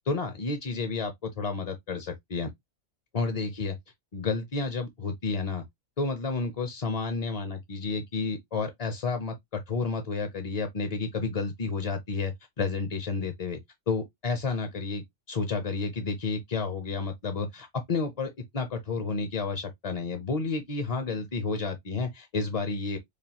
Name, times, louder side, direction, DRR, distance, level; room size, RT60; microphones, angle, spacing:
voice 1, 0.1-2.5 3.1-3.8 4.1-5.6 6.0-13.6 13.9-23.0, left 4 dB, 45° left, 0.5 m, -31 dB
5.0 x 2.3 x 2.8 m
omnidirectional pair, 1.3 m